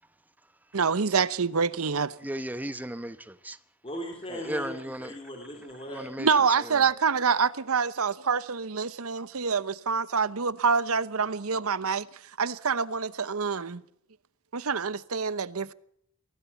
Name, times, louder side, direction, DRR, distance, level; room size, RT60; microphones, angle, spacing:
voice 1, 0.7-2.1 6.2-12.1 12.4-13.8 14.5-15.7, right 5 dB, 75° right, 0.8 m, -26 dB
voice 2, 2.2-3.6 4.3-5.2 5.9-6.3, right 1 dB, 5° right, 0.9 m, -35 dB
voice 3, 3.8-6.1, left 1 dB, 25° left, 3.5 m, -38 dB
23.0 x 16.5 x 7.0 m
head